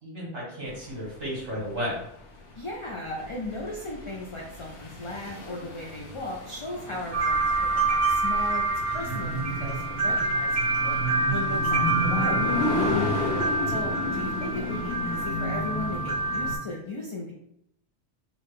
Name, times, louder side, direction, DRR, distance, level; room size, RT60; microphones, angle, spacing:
voice 1, 0.0-2.0 11.7-12.0 13.2-13.4, equal, 80° right, -5 dB, 1.8 m, -34 dB
sound 1, 0.7-16.5, left 1 dB, 75° left, 1.0 m, -32 dB
voice 2, 2.6-7.4 7.9-10.6 10.8-10.9 11.3-12.5 13.7-17.3, left 2 dB, 55° left, -2 dB, 0.3 m, -36 dB
sound 2, 7.1-16.6, right 2 dB, 45° right, 1.1 m, -27 dB
3.8 x 2.2 x 3.2 m, 0.78 s
omnidirectional pair, 1.2 m